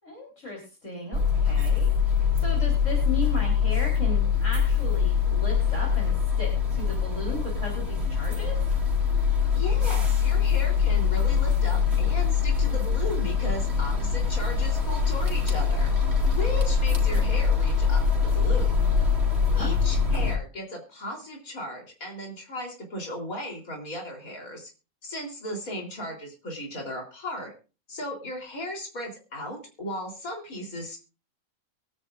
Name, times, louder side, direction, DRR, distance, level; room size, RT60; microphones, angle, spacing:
voice 1, 0.0-1.9 2.3-8.6 19.5-19.7, left 2 dB, 60° left, -2 dB, 4.3 m, -36 dB
sound 1, 1.1-20.4, left 6 dB, 50° right, 3.0 m, -23 dB
voice 2, 9.6-15.9 16.4-18.8 19.6-24.7 25.0-27.5 27.9-31.0, equal, 75° left, 1 dB, 4.1 m, -36 dB
23.0 x 9.7 x 2.5 m, 0.32 s
omnidirectional pair, 1.5 m